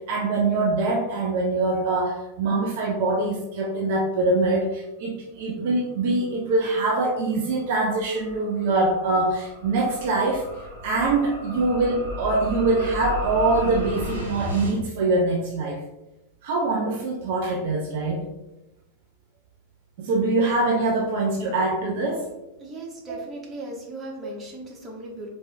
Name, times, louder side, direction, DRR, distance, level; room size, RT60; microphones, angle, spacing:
voice 1, 0.1-10.4 10.8-15.8 16.4-18.3 20.0-22.2 23.1-23.2 24.2-24.3, right 2 dB, 50° right, -1 dB, 0.6 m, -24 dB
sound 1, 7.3-14.8, left 1 dB, 70° right, 1.3 m, -35 dB
voice 2, 22.6-25.3, right 1 dB, 20° right, -2 dB, 1.1 m, -37 dB
4.4 x 3.3 x 2.6 m, 0.94 s
figure-of-eight pair, 90°, 0 cm